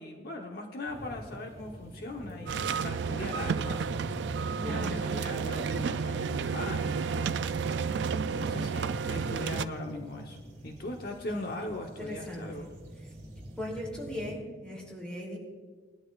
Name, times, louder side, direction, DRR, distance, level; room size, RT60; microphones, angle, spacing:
voice 1, 0.0-3.9 4.6-7.4 8.2-10.4 10.6-12.7, left 1 dB, 55° left, 2 dB, 1.0 m, -39 dB
sound 1, 0.9-14.3, equal, 45° right, 2.4 m, -45 dB
sound 2, 2.5-9.6, right 6 dB, 70° right, 0.4 m, -31 dB
voice 2, 4.6-5.1 9.1-9.2 11.4-11.5 12.0-12.7 13.0-13.1 13.6-15.4, left 1 dB, 5° left, -3 dB, 2.8 m, -39 dB
20.5 x 12.0 x 2.4 m, 1.5 s
head